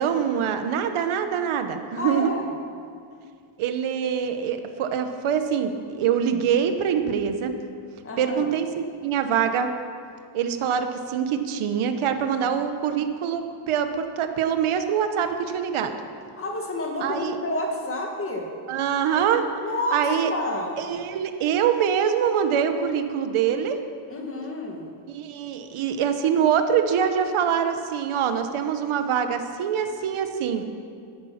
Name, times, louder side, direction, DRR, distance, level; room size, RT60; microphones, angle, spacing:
voice 1, 0.0-2.3 3.6-7.5 8.2-9.7 10.3-15.9 17.0-17.3 18.7-19.5 19.9-20.3 20.8-23.8 25.1-30.6, right 8 dB, 90° right, 8 dB, 1.2 m, -24 dB
voice 2, 2.0-2.5 8.0-8.5 16.4-18.5 19.6-20.8 24.1-24.9, left 1 dB, 25° left, 1 dB, 1.8 m, -29 dB
14.5 x 10.5 x 5.8 m, 2.3 s
wide cardioid pair, 165°, 48 cm